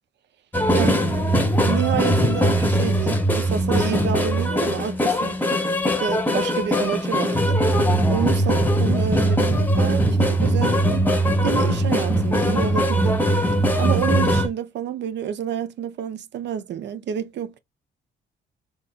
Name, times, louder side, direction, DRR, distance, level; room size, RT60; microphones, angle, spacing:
sound 1, 0.5-14.5, equal, 10° left, 0.9 m, -20 dB
voice 1, 0.7-1.1 1.5-5.4 6.0-7.6 8.1-11.1 11.4-13.2 13.8-17.6, right 8 dB, 60° right, 0.6 m, -28 dB
3.7 x 2.8 x 2.4 m
cardioid pair, 90°, 20 cm